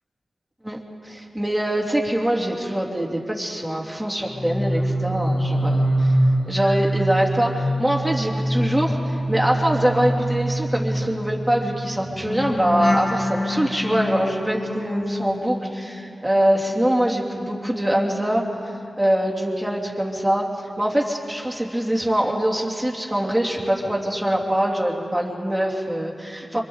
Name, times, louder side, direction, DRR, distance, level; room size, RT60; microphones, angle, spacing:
voice 1, 1.0-6.2 6.5-20.5 20.8-26.6, right 1 dB, 5° right, -2 dB, 2.9 m, -23 dB
sound 1, 4.3-16.6 16.9-18.9 19.2-19.6, equal, 65° left, 2.6 m, -25 dB
27.0 x 25.5 x 4.0 m, 2.6 s
wide cardioid pair, 80°, 0 cm